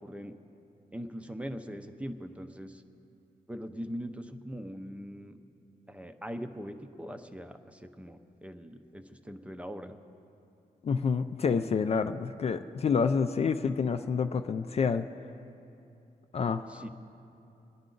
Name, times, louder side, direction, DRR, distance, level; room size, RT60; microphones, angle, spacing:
voice 1, 0.0-0.3 0.9-2.8 3.5-5.4 5.9-10.0 16.7-16.9, equal, 10° right, 8 dB, 0.6 m, -41 dB
voice 2, 10.8-15.1 16.3-16.9, left 5 dB, 40° left, 9 dB, 0.4 m, -28 dB
25.5 x 11.0 x 3.9 m, 2.8 s
wide cardioid pair, 175°, 16 cm